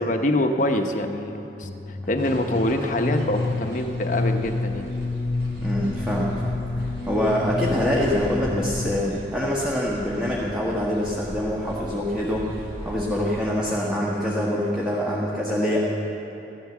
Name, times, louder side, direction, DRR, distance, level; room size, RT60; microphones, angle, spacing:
voice 1, 0.0-4.9 7.5-7.7, left 1 dB, 45° left, 5 dB, 0.9 m, -25 dB
sound 1, 1.6-9.3, left 3 dB, 20° left, 0.3 m, -29 dB
sound 2, 2.2-13.3, equal, 85° right, 3.6 m, -39 dB
voice 2, 5.6-15.8, equal, 5° right, -5 dB, 1.4 m, -25 dB
15.0 x 11.5 x 7.3 m, 3.0 s
head